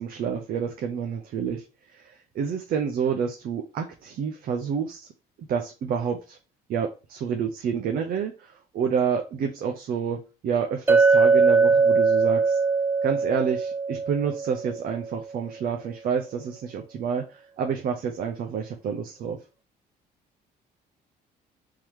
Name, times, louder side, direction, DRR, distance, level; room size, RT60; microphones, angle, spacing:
voice 1, 0.0-1.6 1.9-5.1 5.4-6.4 6.7-12.6 13.0-19.4, right 6 dB, 60° right, 0.7 m, -29 dB
Chink clink, 10.9-15.1, right 4 dB, 15° right, 0.4 m, -21 dB
3.8 x 3.0 x 4.7 m
cardioid pair, 110°, 17 cm